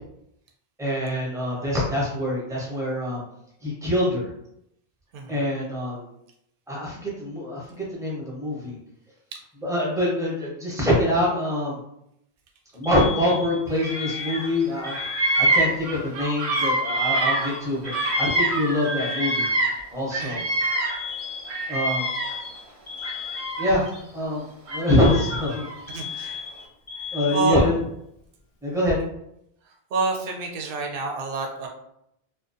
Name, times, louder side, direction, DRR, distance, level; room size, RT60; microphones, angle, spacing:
voice 1, 0.8-3.2 3.6-4.3 5.3-6.1 6.7-8.8 9.6-11.8 12.7-14.9 15.4-19.5 19.9-20.4 21.7-22.1 23.6-23.9 24.1-24.5 24.7-25.7 26.1-26.4 27.1-27.8 28.6-29.0, left 1 dB, 5° right, -5 dB, 0.6 m, -25 dB
Alarm, 12.8-15.8 16.8-19.8 20.9-23.8 24.9-27.8, left 7 dB, 45° left, 0.5 m, -36 dB
Bird vocalization bird call bird song, 13.7-14.5 14.7-19.8 20.1-22.5 23.0-24.0 24.7-25.8, right 2 dB, 90° right, 0.9 m, -26 dB
voice 2, 25.9-26.4 27.0-27.6 29.9-31.7, right 3 dB, 65° right, 2 dB, 0.7 m, -28 dB
2.4 x 2.1 x 2.6 m, 0.77 s
omnidirectional pair, 1.1 m